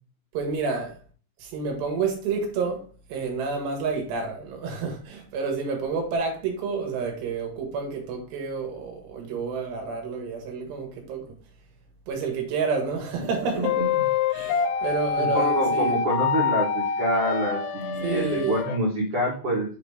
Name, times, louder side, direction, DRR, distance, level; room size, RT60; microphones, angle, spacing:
voice 1, 0.3-1.0 1.4-11.3 12.1-13.8 14.3-16.0 18.0-18.6, right 4 dB, 65° right, 3.4 m, -29 dB
voice 2, 13.5-14.0 15.2-19.8, right 1 dB, 90° right, 1.2 m, -27 dB
sound 1, 13.6-18.8, left 6 dB, 80° left, 2.8 m, -26 dB
7.4 x 4.0 x 4.8 m
omnidirectional pair, 5.7 m